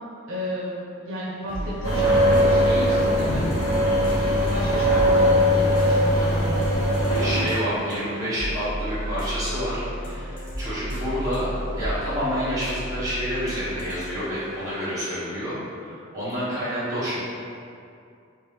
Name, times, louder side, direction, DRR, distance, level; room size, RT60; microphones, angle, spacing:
voice 1, 0.3-3.7 4.5-6.7, equal, 70° right, -5 dB, 0.7 m, -32 dB
sound 1, 1.5-15.3, equal, 40° left, 0.7 m, -33 dB
sound 2, 1.8-7.4, equal, 75° left, 1.2 m, -20 dB
voice 2, 7.2-17.2, equal, 15° right, -12 dB, 1.1 m, -29 dB
3.5 x 2.9 x 3.2 m, 2.5 s
head